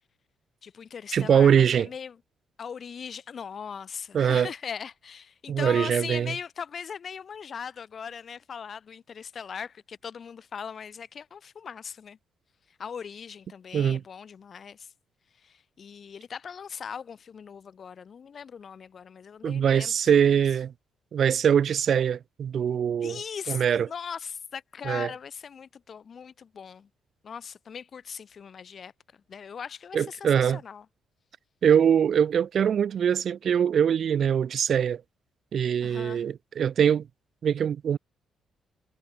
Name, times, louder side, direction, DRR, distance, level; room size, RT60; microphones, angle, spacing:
voice 1, 0.6-2.2 2.6-12.2 12.7-14.9 15.4-20.4 23.0-26.9 27.2-28.9 29.3-30.9 35.8-36.2, left 7 dB, 50° left, 2.0 m, -39 dB
voice 2, 1.1-1.9 4.1-4.5 5.5-6.3 13.7-14.0 19.4-20.7 21.1-23.2 23.5-23.9 24.9-25.1 29.9-30.6 31.6-35.0 35.5-37.1 37.4-38.0, right 8 dB, 55° right, 0.3 m, -23 dB
cardioid pair, 90°, 0 cm